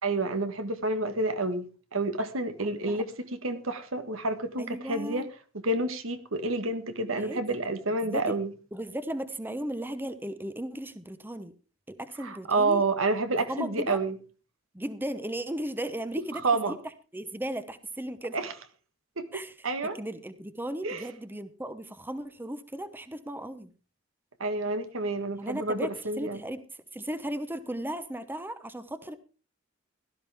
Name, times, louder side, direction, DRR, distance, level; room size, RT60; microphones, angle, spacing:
voice 1, 0.0-5.2 5.5-8.5 12.2-14.2 16.3-16.8 18.3-18.5 19.2-19.3 19.6-19.9 20.8-21.0 24.4-26.4, right 2 dB, 85° right, 1.6 m, -29 dB
voice 2, 2.6-3.0 4.6-5.3 7.2-7.6 8.0-8.4 8.7-11.5 11.9-12.8 13.5-14.0 14.7-16.8 17.1-18.4 19.3-19.5 19.9-23.7 25.3-26.6 26.9-29.2, right 1 dB, 10° right, 0.9 m, -36 dB
17.0 x 12.5 x 3.5 m
head